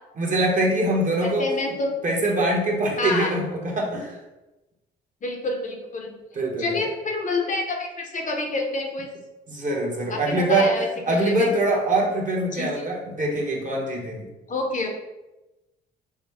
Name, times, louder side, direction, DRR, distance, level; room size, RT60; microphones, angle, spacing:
voice 1, 0.2-1.5 2.0-4.2 6.3-6.8 9.5-10.7 11.1-14.3, right 2 dB, 40° right, -1 dB, 1.3 m, -23 dB
voice 2, 1.2-1.9 3.0-3.3 5.2-6.1 6.6-9.1 10.1-11.5 12.5-12.8 14.5-14.9, left 2 dB, 40° left, 2 dB, 0.8 m, -28 dB
6.1 x 2.2 x 3.5 m, 1.0 s
cardioid pair, 90°, 20 cm